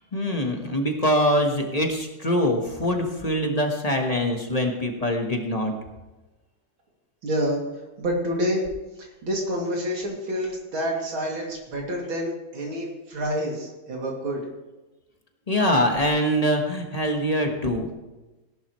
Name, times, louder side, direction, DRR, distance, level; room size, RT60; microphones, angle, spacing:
voice 1, 0.1-5.7 15.5-17.9, equal, 20° left, 2 dB, 1.2 m, -23 dB
voice 2, 7.2-7.6 8.0-8.7 9.0-14.4, equal, 80° right, -1 dB, 3.4 m, -28 dB
17.5 x 11.5 x 3.2 m, 1.1 s
omnidirectional pair, 2.2 m